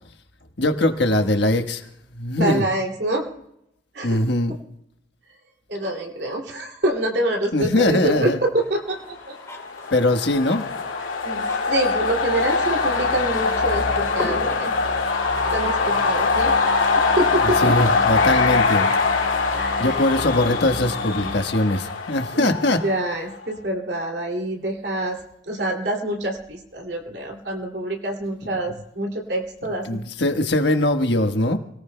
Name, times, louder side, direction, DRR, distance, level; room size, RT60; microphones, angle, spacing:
voice 1, 0.6-1.8 2.1-2.6 4.0-4.5 7.5-8.4 9.9-10.7 17.6-18.9 19.8-22.8 29.9-31.6, left 1 dB, 65° left, 6 dB, 1.4 m, -21 dB
voice 2, 2.4-3.3 3.9-4.2 4.5-4.6 5.7-9.3 11.2-11.4 11.7-14.7 15.5-16.5 17.0-17.8 19.5-20.1 22.3-25.2 25.5-29.9, right 1 dB, 60° right, 2 dB, 2.6 m, -26 dB
sound 1, 8.6-14.8, left 1 dB, 15° left, 3.9 m, -40 dB
sound 2, 9.4-23.2, left 4 dB, 90° left, 2.5 m, -23 dB
sound 3, 10.8-21.4, equal, 35° left, 3.4 m, -36 dB
29.0 x 18.5 x 2.2 m, 0.80 s
head